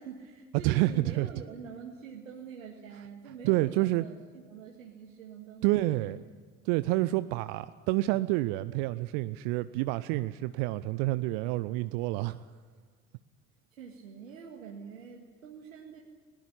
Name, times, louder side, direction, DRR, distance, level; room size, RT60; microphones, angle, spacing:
voice 1, 0.0-6.2 13.7-16.0, right 6 dB, 70° right, 0 dB, 2.1 m, -46 dB
voice 2, 0.6-1.3 3.4-4.1 5.6-6.2 6.6-12.5, right 18 dB, 50° right, 14 dB, 0.7 m, -28 dB
21.0 x 19.0 x 10.0 m, 1.5 s
figure-of-eight pair, 60°, 41 cm